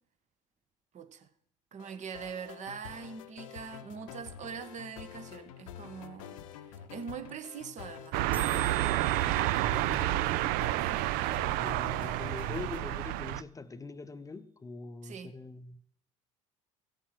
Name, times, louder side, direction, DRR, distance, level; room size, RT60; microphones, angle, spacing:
voice 1, 0.9-1.3 1.7-8.6 10.8-11.3 15.0-15.3, right 6 dB, 45° right, 1.3 m, -43 dB
sound 1, 1.8-13.1, left 9 dB, 75° left, 0.8 m, -48 dB
sound 2, 6.3-6.4 6.5-6.6 6.8-7.0 7.3-7.4 7.5-7.8 8.1-8.2 8.3-12.3, right 4 dB, 10° right, 1.0 m, -47 dB
sound 3, 8.1-13.4, right 16 dB, 60° right, 0.4 m, -29 dB
voice 2, 9.6-10.6 11.4-15.8, left 3 dB, 20° left, 0.7 m, -43 dB
16.5 x 7.2 x 6.1 m
hypercardioid pair, 65°, 17 cm